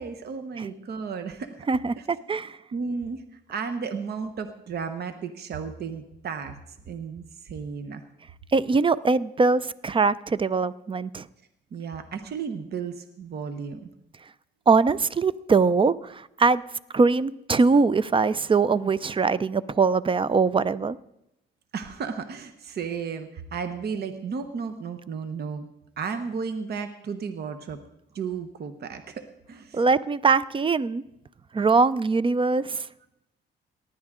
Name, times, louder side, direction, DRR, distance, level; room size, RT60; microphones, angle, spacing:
voice 1, 0.0-1.7 2.0-2.1 2.7-6.6 6.9-8.0 11.7-13.8 21.7-25.7 26.0-27.8 28.1-29.8, right 5 dB, 55° right, 8 dB, 1.0 m, -34 dB
voice 2, 1.7-2.6 8.5-11.3 14.7-16.6 16.9-21.0 29.7-31.0 31.5-32.9, right 4 dB, 25° right, 18 dB, 0.5 m, -22 dB
18.5 x 11.0 x 3.7 m, 0.84 s
cardioid pair, 90°, 20 cm